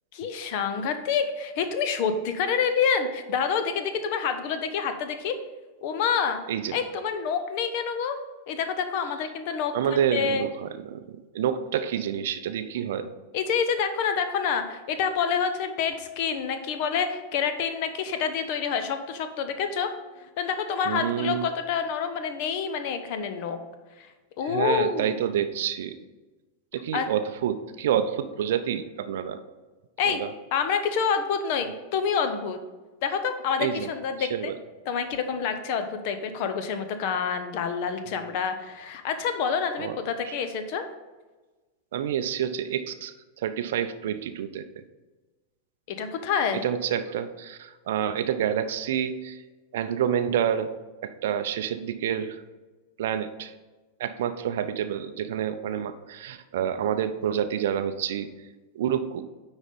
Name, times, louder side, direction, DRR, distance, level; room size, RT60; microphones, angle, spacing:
voice 1, 0.1-5.4 5.8-6.4 6.7-8.2 8.5-10.5 13.3-19.9 20.4-23.6 24.0-24.1 24.4-25.2 26.9-27.1 30.0-30.2 30.5-32.6 33.0-34.5 34.9-40.9 45.9-46.6, left 6 dB, 45° left, 8 dB, 0.9 m, -27 dB
voice 2, 9.7-13.1 20.8-21.5 24.4-26.0 26.7-29.4 30.0-30.3 33.6-33.9 34.2-34.6 39.8-40.0 40.2-40.4 41.9-44.7 46.6-49.4 49.7-50.7 51.0-52.4 53.0-53.5 54.0-58.3 58.7-59.2, right 9 dB, 55° right, 10 dB, 0.5 m, -28 dB
9.7 x 4.0 x 5.2 m, 1.2 s
figure-of-eight pair, 90°, 0 cm